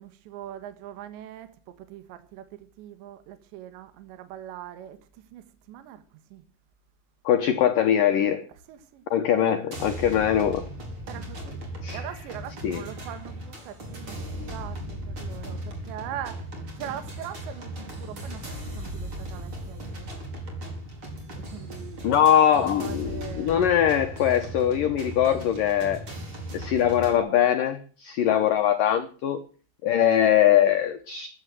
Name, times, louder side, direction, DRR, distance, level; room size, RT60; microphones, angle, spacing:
voice 1, 0.0-1.5 1.8-6.5 8.7-9.0 9.3-9.5 11.1-11.6 11.9-14.2 14.5-20.1 21.3-22.2 22.6-23.7, right 11 dB, 70° right, 3.6 m, -41 dB
voice 2, 7.3-8.5 9.1-10.7 11.8-12.0 12.6-12.8 22.0-26.1 26.5-29.4 29.8-31.3, left 10 dB, 85° left, 1.9 m, -22 dB
sound 1, 9.7-27.2, right 1 dB, 25° right, 4.8 m, -37 dB
15.0 x 12.5 x 7.6 m
omnidirectional pair, 5.6 m